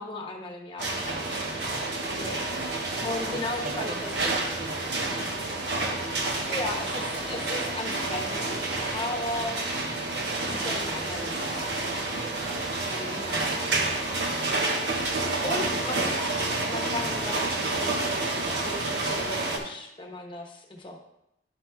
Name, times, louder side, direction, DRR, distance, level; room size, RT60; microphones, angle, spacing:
voice 1, 0.0-1.5 2.1-2.6 3.0-4.1 6.5-8.6 8.9-9.6 10.4-11.6 12.8-13.5 15.4-16.1 16.7-21.0, left 2 dB, 30° left, 2 dB, 1.0 m, -36 dB
sound 1, 0.8-19.6, right 2 dB, 75° right, 1.1 m, -29 dB
voice 2, 2.5-2.8 3.3-5.2 9.6-10.1 14.3-14.6 15.0-16.2, right 2 dB, 45° right, 7 dB, 0.5 m, -41 dB
10.5 x 5.9 x 2.3 m, 0.81 s
head